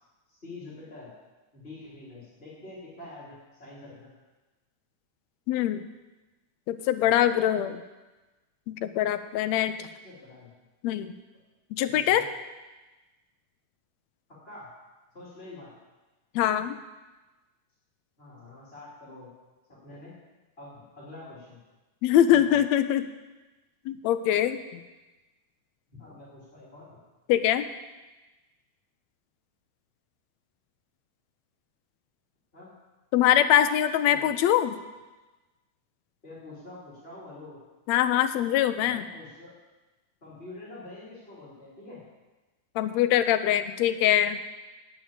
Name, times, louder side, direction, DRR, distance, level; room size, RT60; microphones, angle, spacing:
voice 1, 0.3-1.1 1.5-4.0 10.0-10.5 11.9-12.3 14.4-14.7 15.1-15.7 18.2-19.3 19.7-20.1 20.6-21.6 22.3-22.6 25.9-27.0 32.5-32.7 34.1-34.3 36.2-37.6 38.8-39.5 40.2-42.0, left 2 dB, 20° left, -8 dB, 3.2 m, -46 dB
voice 2, 5.5-5.8 6.7-7.8 8.7-9.9 10.8-11.1 11.8-12.2 16.4-16.8 22.0-23.1 23.9-24.6 27.3-27.7 33.1-34.8 37.9-39.0 42.8-44.4, left 11 dB, 80° left, 11 dB, 1.8 m, -23 dB
8.8 x 8.5 x 8.8 m, 1.2 s
omnidirectional pair, 3.3 m